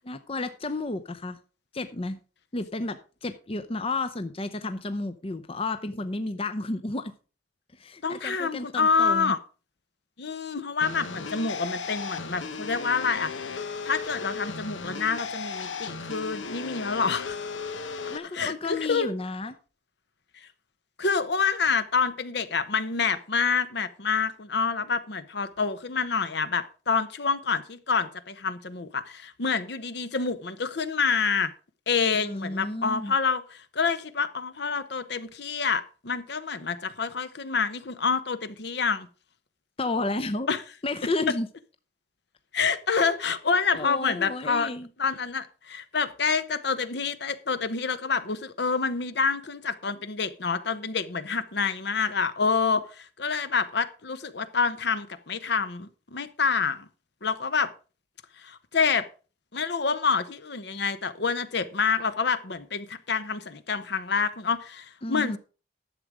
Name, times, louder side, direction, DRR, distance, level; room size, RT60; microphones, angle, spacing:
voice 1, 0.0-1.4 1.7-2.2 2.5-7.1 7.7-9.3 18.1-19.6 32.1-33.1 39.8-40.5 40.8-41.5 43.7-44.9 65.0-65.4, left 2 dB, 30° left, 0.6 m, -32 dB
voice 2, 8.0-9.4 10.2-13.3 13.8-17.4 18.3-19.1 21.0-31.5 31.9-39.1 40.5-40.6 42.5-44.7 45.0-56.9 57.2-57.7 58.4-59.1 59.5-65.4, left 5 dB, 60° left, 0.9 m, -27 dB
sound 1, 10.8-18.2, left 4 dB, 85° left, 1.0 m, -35 dB
11.5 x 7.6 x 4.9 m
head